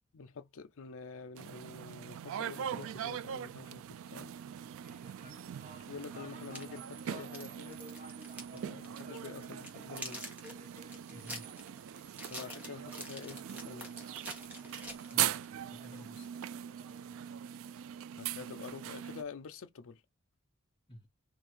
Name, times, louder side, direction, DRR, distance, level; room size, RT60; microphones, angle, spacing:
voice 1, 0.1-4.3 5.9-7.9 8.5-10.2 12.3-13.9 18.2-20.0, left 5 dB, 65° left, 0.5 m, -47 dB
sound 1, 1.4-19.2, right 10 dB, 65° right, 0.3 m, -41 dB
sound 2, 4.5-18.2, equal, 35° right, 1.4 m, -57 dB
voice 2, 5.2-5.5 11.1-11.5 15.1-15.4 15.7-16.4 20.9-21.1, equal, 25° left, 1.4 m, -52 dB
sound 3, 6.6-8.6 8.8-9.0 9.4-15.5, equal, 5° right, 1.2 m, -47 dB
3.4 x 2.6 x 4.6 m
head